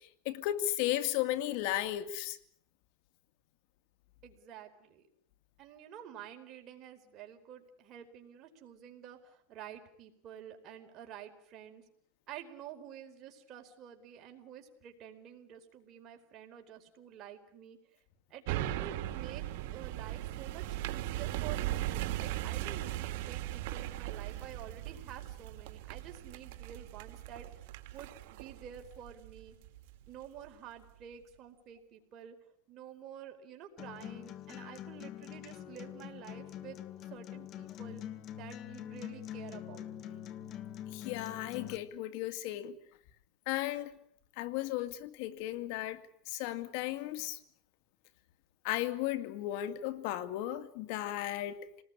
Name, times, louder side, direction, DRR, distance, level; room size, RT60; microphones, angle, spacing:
voice 1, 0.3-2.4 40.9-42.8 43.5-43.9 44.4-46.0 46.3-47.4 48.6-51.8, left 13 dB, 65° left, 2.4 m, -35 dB
voice 2, 4.2-5.1 5.6-11.8 12.3-17.8 18.3-29.6 30.1-32.4 32.7-36.8 37.1-38.0 38.3-40.2, right 9 dB, 40° right, 4.7 m, -49 dB
sound 1, 18.5-29.9 30.4-30.5, right 14 dB, 65° right, 2.3 m, -38 dB
Acoustic guitar, 33.8-41.8, left 10 dB, 40° left, 2.1 m, -44 dB
28.0 x 20.0 x 9.9 m
supercardioid pair, 135°, 0 cm